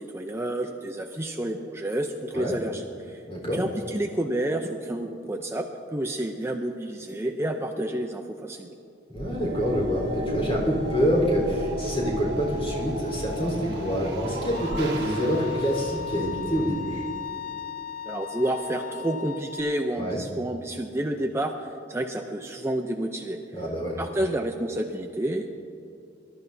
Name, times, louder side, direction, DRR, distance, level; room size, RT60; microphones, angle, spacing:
voice 1, 0.0-3.2 3.5-8.7 18.1-21.5 21.9-23.4 24.0-25.5, right 1 dB, 15° right, 3 dB, 0.5 m, -29 dB
voice 2, 3.3-3.6 9.1-17.1 20.0-20.2 23.5-24.0, equal, 30° left, -2 dB, 3.9 m, -26 dB
sound 1, 9.1-17.3, equal, 60° right, 1.7 m, -34 dB
Bowed string instrument, 14.5-19.6, left 8 dB, 50° left, 0.7 m, -36 dB
23.5 x 13.0 x 2.7 m, 2.7 s
head